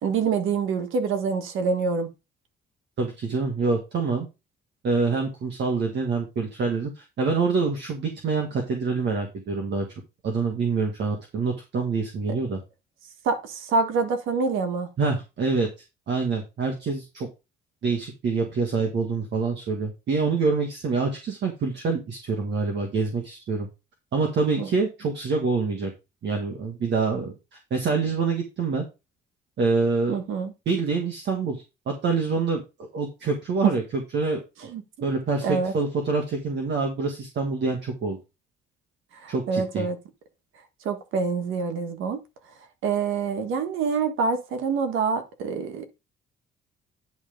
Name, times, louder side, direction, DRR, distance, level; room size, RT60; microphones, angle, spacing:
voice 1, 0.0-2.1 13.2-14.9 24.6-24.7 30.1-30.5 33.6-33.7 34.7-34.8 35.4-35.7 39.2-40.0 40.8-42.2 42.8-45.9, right 5 dB, 85° right, 1.5 m, -26 dB
voice 2, 3.0-4.3 4.8-9.9 10.2-12.6 15.0-15.7 16.1-17.3 17.8-23.7 24.1-25.9 26.2-27.3 27.7-28.9 29.6-30.2 30.7-32.6 32.9-33.8 34.1-34.7 35.0-38.2 39.3-39.9, right 4 dB, 65° right, 1.8 m, -26 dB
10.5 x 3.5 x 5.1 m
cardioid pair, 90°, 20 cm